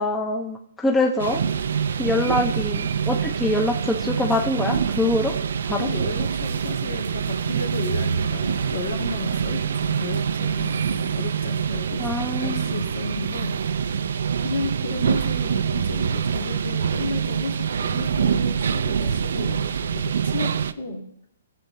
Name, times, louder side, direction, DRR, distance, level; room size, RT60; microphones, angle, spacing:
voice 1, 0.0-1.4 2.0-5.3 5.7-5.9 12.0-12.7, left 2 dB, 10° left, 2 dB, 0.7 m, -24 dB
sound 1, 1.2-20.7, right 7 dB, 75° right, 0.4 m, -25 dB
voice 2, 5.8-12.1 12.4-14.0 14.4-21.1, left 3 dB, 75° left, 1 dB, 2.3 m, -33 dB
18.0 x 7.4 x 2.7 m, 0.75 s
hypercardioid pair, 160°, 0 cm